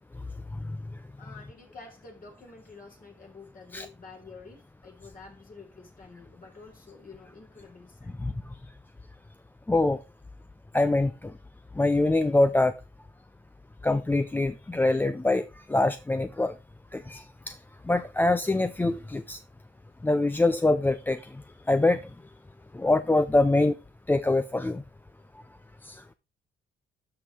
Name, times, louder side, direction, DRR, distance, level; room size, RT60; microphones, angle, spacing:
voice 1, 1.2-8.1, left 4 dB, 45° left, 3.5 m, -49 dB
voice 2, 9.7-10.0 10.7-11.1 11.8-12.7 13.8-16.5 16.9-17.5 17.9-19.4 20.0-21.2 21.7-22.0 22.7-23.7 24.1-24.8 25.9-26.0, left 2 dB, 10° left, 0.4 m, -24 dB
12.5 x 5.4 x 3.2 m
cardioid pair, 90°, 20 cm